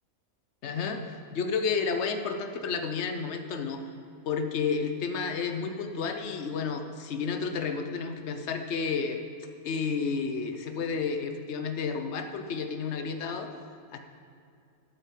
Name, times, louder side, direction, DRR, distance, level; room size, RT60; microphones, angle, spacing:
voice 1, 0.6-3.8 4.2-9.2 9.6-13.6 13.9-14.0, left 5 dB, 55° left, 6 dB, 1.1 m, -31 dB
8.7 x 8.4 x 7.6 m, 2.4 s
omnidirectional pair, 1.5 m